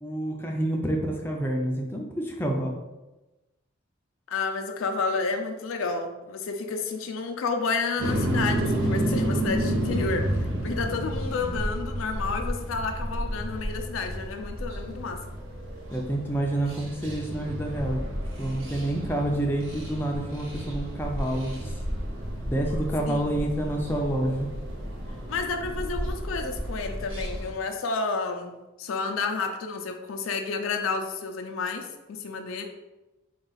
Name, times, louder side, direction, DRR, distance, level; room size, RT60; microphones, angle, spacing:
voice 1, 0.0-2.8 15.9-18.0 18.4-21.7 22.4-24.5, right 1 dB, 10° left, 0 dB, 0.4 m, -28 dB
voice 2, 4.3-10.2 10.6-15.2 23.1-23.3 25.3-32.6, left 4 dB, 80° left, 4 dB, 0.4 m, -30 dB
sound 1, 8.0-27.5, equal, 85° right, 0.9 m, -31 dB
3.7 x 2.4 x 3.9 m, 1.1 s
head